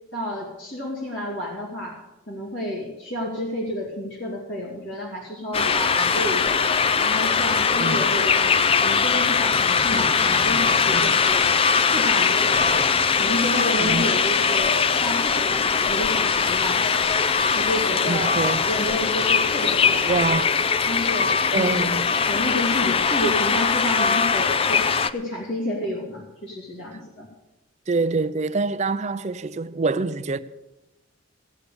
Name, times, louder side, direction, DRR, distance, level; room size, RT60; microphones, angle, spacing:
voice 1, 0.1-2.0 2.3-6.7 7.0-11.4 11.9-12.8 13.2-17.0 17.5-20.4 20.8-21.9 22.3-27.3, equal, 55° left, 2.4 m, -30 dB
sound 1, 5.5-25.1, left 5 dB, 25° left, 0.4 m, -21 dB
voice 2, 7.8-8.1 10.9-11.1 13.8-14.1 18.1-18.6 20.1-20.5 21.5-22.1 27.9-30.4, right 3 dB, 30° right, 0.5 m, -25 dB
16.5 x 8.4 x 6.7 m
head